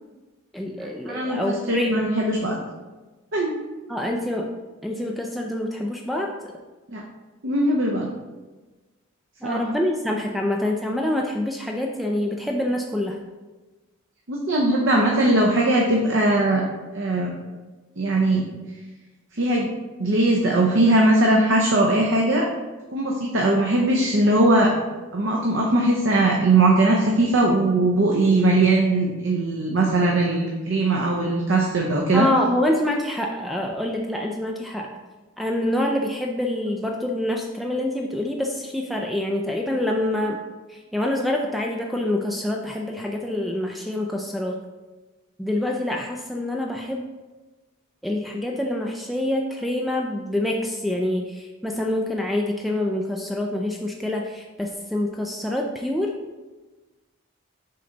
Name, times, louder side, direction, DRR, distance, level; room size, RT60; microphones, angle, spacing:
voice 1, 0.5-2.1 3.9-4.5 4.8-6.5 9.4-13.2 32.1-34.9 35.4-40.4 40.7-44.6 45.4-47.0 48.0-56.2, left 1 dB, ahead, 1 dB, 0.3 m, -26 dB
voice 2, 1.1-2.6 3.3-3.6 6.9-7.0 7.4-8.1 9.4-9.6 14.3-16.6 16.9-17.3 18.0-18.5 19.3-19.7 20.0-22.5 22.9-24.7 25.1-32.3, right 2 dB, 60° right, -1 dB, 0.7 m, -20 dB
6.6 x 3.8 x 3.9 m, 1.2 s
head